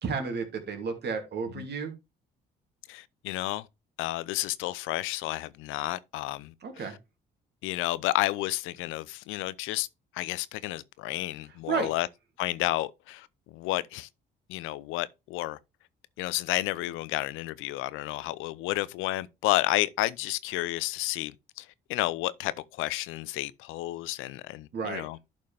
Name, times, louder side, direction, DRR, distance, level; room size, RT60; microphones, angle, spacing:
voice 1, 0.0-1.9 6.6-7.0 11.7-11.9 24.7-25.0, right 5 dB, 55° right, 2.8 m, -32 dB
voice 2, 2.9-3.7 4.0-6.5 7.6-9.9 10.1-12.1 12.4-14.1 14.5-15.6 16.2-25.2, left 17 dB, 75° left, 0.6 m, -31 dB
11.5 x 5.3 x 3.4 m
supercardioid pair, 60°, 21 cm